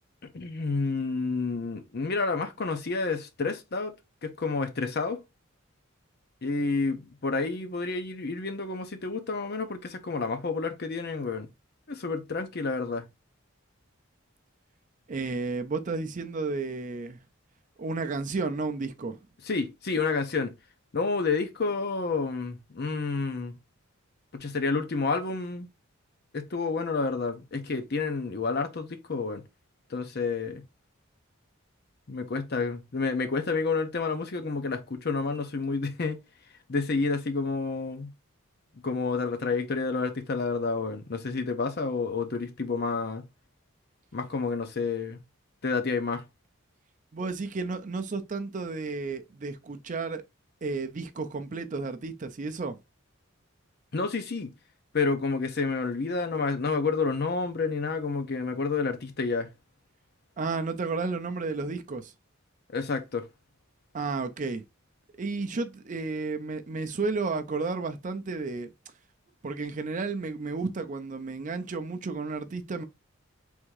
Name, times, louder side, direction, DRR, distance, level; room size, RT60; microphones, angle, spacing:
voice 1, 0.2-3.9 4.2-5.2 6.4-11.5 11.9-13.0 19.4-20.5 20.9-23.5 24.3-25.7 26.3-29.4 29.9-30.6 32.1-36.2 36.7-38.1 38.8-43.2 44.1-45.2 45.6-46.2 53.9-54.5 54.9-59.5 62.7-63.3, left 4 dB, 50° left, 0.7 m, -29 dB
voice 2, 15.1-17.2 17.8-19.2 47.1-50.2 50.6-52.8 60.4-62.1 63.9-64.6 65.2-68.7 69.4-72.8, right 3 dB, 35° right, 0.5 m, -32 dB
3.6 x 2.7 x 4.6 m
head